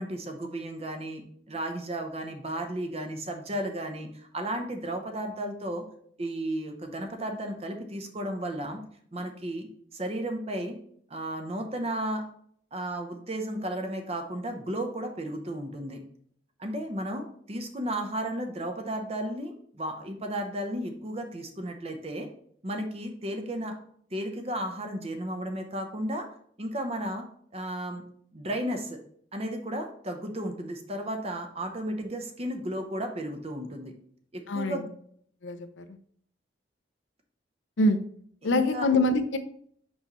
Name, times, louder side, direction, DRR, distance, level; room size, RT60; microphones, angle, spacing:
voice 1, 0.0-5.8 6.2-8.8 9.1-10.8 11.1-12.3 12.7-16.0 16.6-22.3 22.6-23.8 24.1-26.3 26.6-27.3 27.5-28.0 28.3-29.0 29.3-33.9 34.3-34.9 38.4-38.9, right 1 dB, 35° right, 4 dB, 0.8 m, -34 dB
voice 2, 34.5-34.9 35.4-35.8 37.8-38.0 38.4-39.4, left 2 dB, 85° left, 9 dB, 0.6 m, -25 dB
6.2 x 5.5 x 3.0 m, 0.62 s
head